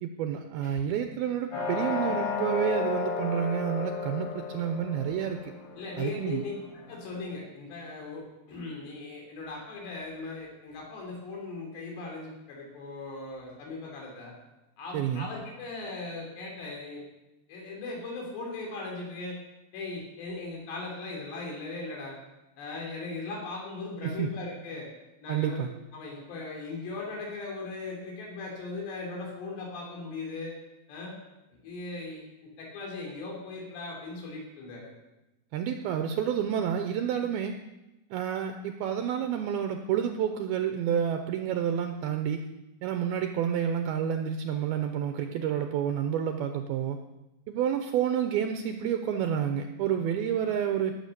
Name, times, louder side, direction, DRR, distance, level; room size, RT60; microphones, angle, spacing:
voice 1, 0.0-5.5 6.0-6.4 14.9-15.3 24.0-24.3 25.3-25.7 35.5-37.5 38.1-42.5 42.8-47.0 47.5-51.0, right 8 dB, 80° right, 6 dB, 2.4 m, -29 dB
sound 1, 1.5-7.1, left 5 dB, 60° left, 6.4 m, -34 dB
voice 2, 5.8-14.3 14.8-17.0 17.5-19.4 19.7-22.2 22.6-24.9 25.2-30.5 30.9-31.2 31.6-32.2 32.6-34.9, left 3 dB, 80° left, -1 dB, 5.5 m, -38 dB
18.0 x 7.4 x 6.8 m, 0.99 s
omnidirectional pair, 4.9 m